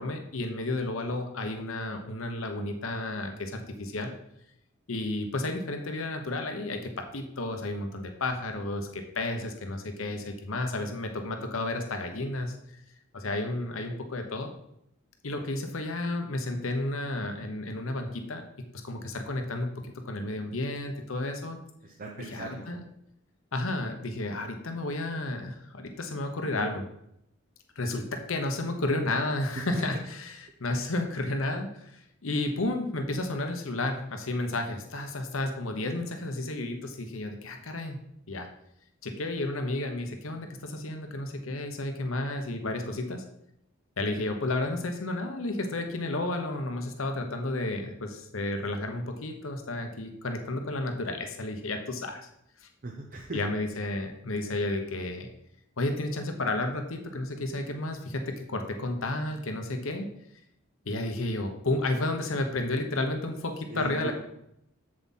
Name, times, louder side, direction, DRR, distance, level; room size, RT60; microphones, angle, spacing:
voice 1, 0.0-4.1 4.9-12.8 13.1-14.5 15.2-18.4 18.8-21.6 22.3-22.8 23.5-26.9 27.8-38.0 38.3-38.5 39.0-43.2 44.0-52.2 52.6-52.7 53.3-55.3 55.8-60.1 60.8-64.1, left 2 dB, 80° left, 5 dB, 1.0 m, -32 dB
voice 2, 21.8-22.7 29.6-29.7 30.7-30.9 52.8-53.4 63.7-64.1, right 2 dB, 45° right, 1 dB, 0.9 m, -39 dB
7.5 x 7.5 x 4.2 m, 0.77 s
head